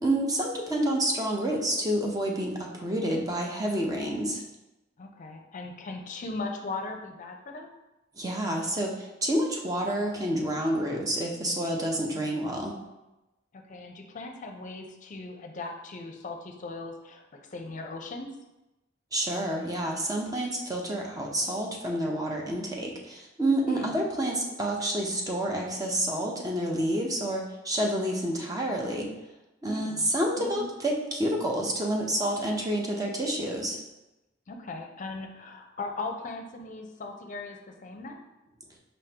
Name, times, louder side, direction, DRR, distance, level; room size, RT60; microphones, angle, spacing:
voice 1, 0.0-4.4 8.2-12.7 19.1-29.1 29.6-33.8, right 1 dB, 20° right, -1 dB, 0.6 m, -29 dB
voice 2, 5.0-7.7 12.1-12.6 13.7-18.3 23.7-24.0 29.7-30.7 34.5-38.2, left 3 dB, 45° left, 4 dB, 0.5 m, -39 dB
5.1 x 3.7 x 2.8 m, 0.98 s
head